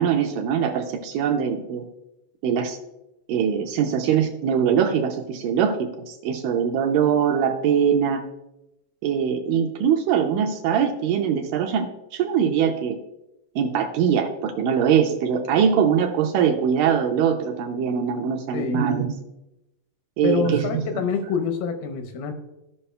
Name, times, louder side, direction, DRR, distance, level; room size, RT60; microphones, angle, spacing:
voice 1, 0.0-1.9 2.4-2.8 3.3-8.2 9.0-13.0 13.6-19.2 20.2-20.7 20.9-21.0, right 8 dB, 80° right, 4 dB, 2.0 m, -22 dB
voice 2, 18.5-18.9 20.2-22.3, left 5 dB, 90° left, 6 dB, 2.7 m, -26 dB
15.0 x 5.5 x 2.2 m, 0.92 s
omnidirectional pair, 4.2 m